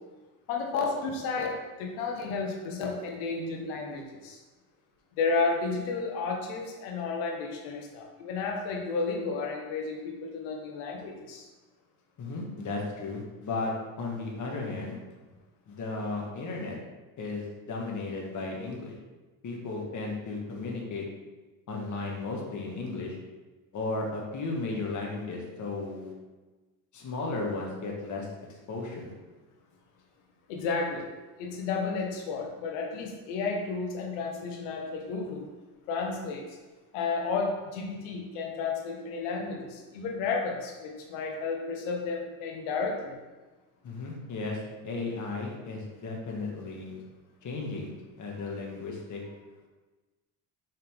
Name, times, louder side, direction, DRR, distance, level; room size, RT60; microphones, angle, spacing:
voice 1, 0.5-4.4 5.2-11.5 30.5-31.1 31.4-35.5 35.9-36.6 36.9-43.2, left 4 dB, 90° left, 2 dB, 1.3 m, -32 dB
voice 2, 12.2-13.7 14.0-15.0 15.7-16.8 17.2-18.9 19.4-21.0 21.7-23.2 23.7-26.1 26.9-29.1 43.8-44.6 44.8-47.0 47.4-47.9 48.2-49.2, left 3 dB, 45° left, -2 dB, 1.7 m, -35 dB
5.7 x 5.3 x 3.6 m, 1.2 s
supercardioid pair, 100°, 42 cm